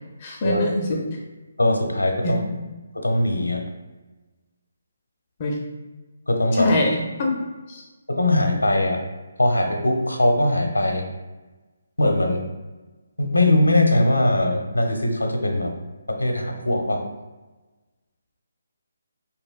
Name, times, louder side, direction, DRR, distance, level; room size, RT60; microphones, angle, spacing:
voice 1, 0.2-1.0 2.2-2.5 5.4-5.6 6.5-7.8, left 2 dB, 30° left, 0 dB, 0.5 m, -24 dB
voice 2, 1.6-2.4 2.9-3.6 6.3-6.7 8.1-9.0 9.4-11.0 12.0-12.4 13.2-15.7 16.1-17.0, left 1 dB, 80° left, 3 dB, 0.7 m, -20 dB
4.3 x 3.0 x 2.4 m, 1.2 s
figure-of-eight pair, 145°, 0 cm